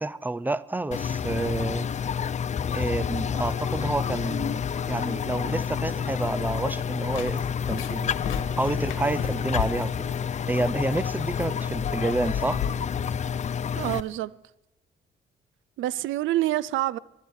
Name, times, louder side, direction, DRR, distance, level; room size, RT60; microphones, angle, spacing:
voice 1, 0.0-1.9 2.7-7.4 7.7-8.1 8.6-10.1 10.5-12.6, right 2 dB, 10° right, 0.6 m, -29 dB
sound 1, 0.9-14.0, left 7 dB, 35° left, 0.5 m, -29 dB
sound 2, 7.0-14.1, left 9 dB, 85° left, 1.3 m, -36 dB
voice 2, 13.7-14.3 15.8-17.0, right 15 dB, 75° right, 0.5 m, -27 dB
24.5 x 8.6 x 4.7 m
cardioid pair, 90°, 20 cm